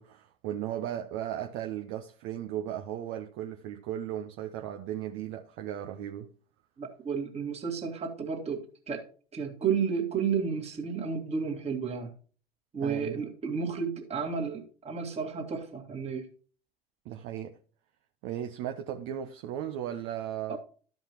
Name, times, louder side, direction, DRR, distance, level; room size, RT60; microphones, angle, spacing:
voice 1, 0.0-6.3 12.8-13.2 17.0-17.6 18.2-20.6, right 11 dB, 40° right, 0.8 m, -36 dB
voice 2, 6.8-9.0 9.3-12.1 12.7-16.3 20.5-20.6, right 6 dB, 20° right, 1.9 m, -32 dB
13.0 x 5.3 x 3.0 m
figure-of-eight pair, 85°, 29 cm